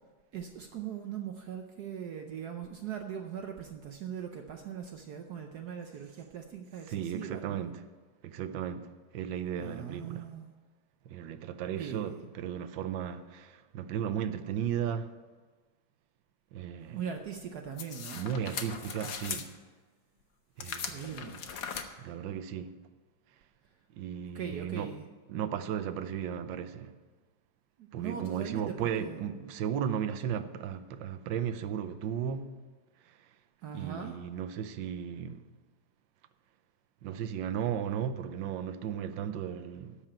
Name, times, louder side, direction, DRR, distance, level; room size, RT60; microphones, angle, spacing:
voice 1, 0.3-7.7 9.6-10.5 11.7-12.2 16.9-18.3 20.8-21.5 24.3-25.1 27.8-29.2 33.6-34.2, right 8 dB, 65° right, 1.2 m, -40 dB
voice 2, 6.9-7.8 8.2-10.3 11.0-15.2 16.5-17.0 18.2-19.5 20.6-21.0 22.0-22.8 23.9-25.0 25.3-27.0 27.9-32.6 33.1-33.3 33.7-35.4 37.0-40.0, right 8 dB, 80° right, 1.4 m, -35 dB
sound 1, 17.8-19.5 20.6-21.8, left 6 dB, 55° left, 1.1 m, -39 dB
13.0 x 5.0 x 8.7 m
omnidirectional pair, 2.1 m